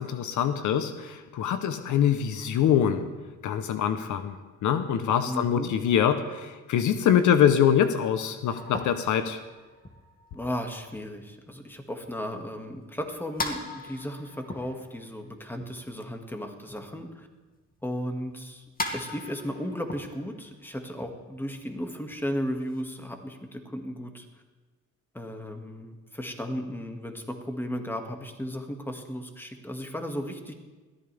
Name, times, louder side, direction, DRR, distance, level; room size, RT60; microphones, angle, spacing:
voice 1, 0.0-3.1 3.4-9.4, left 9 dB, 75° left, 10 dB, 1.0 m, -24 dB
voice 2, 5.3-5.7 10.3-17.3 17.8-18.6 18.9-24.3 25.1-30.5, equal, 5° left, 3 dB, 2.1 m, -35 dB
sound 1, 8.5-17.0 17.3-22.8, left 2 dB, 30° left, 2.3 m, -40 dB
21.0 x 14.0 x 3.5 m, 1.3 s
cardioid pair, 90°, 30 cm